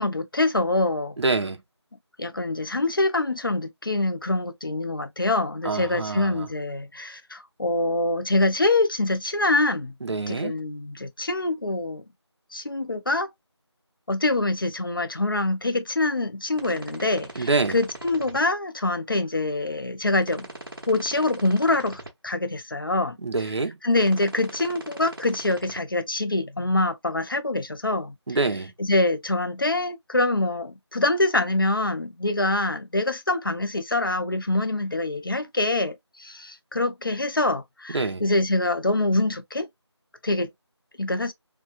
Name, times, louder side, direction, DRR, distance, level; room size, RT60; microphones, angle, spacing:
voice 1, 0.0-1.1 2.2-9.9 10.3-12.0 12.5-13.3 14.1-20.5 20.9-23.2 23.8-28.1 28.8-39.7 40.2-40.5 41.0-41.3, left 2 dB, 50° left, 0.4 m, -25 dB
voice 2, 1.2-1.6 5.6-6.5 10.0-10.6 17.4-17.7 23.2-23.7 28.3-28.7 37.9-38.2, right 3 dB, 70° right, 0.6 m, -26 dB
sound 1, 16.5-18.4 20.2-22.1 23.9-25.8, right 2 dB, 50° right, 1.0 m, -40 dB
2.9 x 2.2 x 2.3 m
figure-of-eight pair, 180°, 15 cm